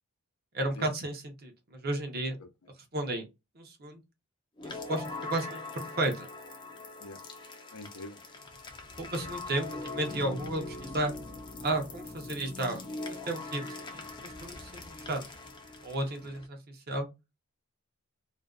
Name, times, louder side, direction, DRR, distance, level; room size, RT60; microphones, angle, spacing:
voice 1, 0.5-2.4 2.9-3.2 3.6-4.0 4.6-6.3 9.0-11.1 11.6-12.8 13.1-15.2 15.8-17.1, right 2 dB, 45° right, 0.7 m, -33 dB
sound 1, 4.6-16.5, left 3 dB, 20° left, 0.4 m, -42 dB
voice 2, 7.7-8.2 9.2-9.8, left 2 dB, 75° left, 0.6 m, -45 dB
2.6 x 2.2 x 2.3 m
head